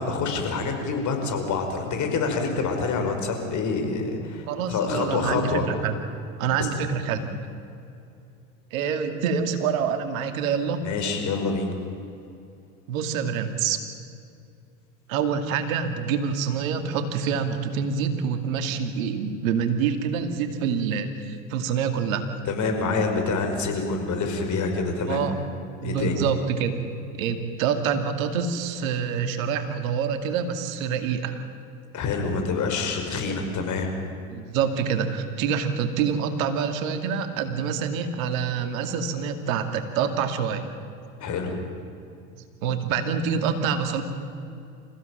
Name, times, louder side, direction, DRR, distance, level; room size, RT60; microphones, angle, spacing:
voice 1, 0.0-5.6 6.6-6.7 7.0-7.2 10.8-11.8 22.5-25.3 25.8-26.2 31.9-33.9 41.2-41.5, left 4 dB, 40° left, 4 dB, 5.2 m, -27 dB
voice 2, 4.5-5.9 6.4-7.2 8.7-10.9 12.9-13.9 15.1-22.2 25.1-25.3 25.8-26.7 27.1-31.4 34.3-40.7 42.4-44.0, right 6 dB, 70° right, 7 dB, 2.5 m, -26 dB
27.5 x 16.0 x 9.1 m, 2.6 s
hypercardioid pair, 85°, 43 cm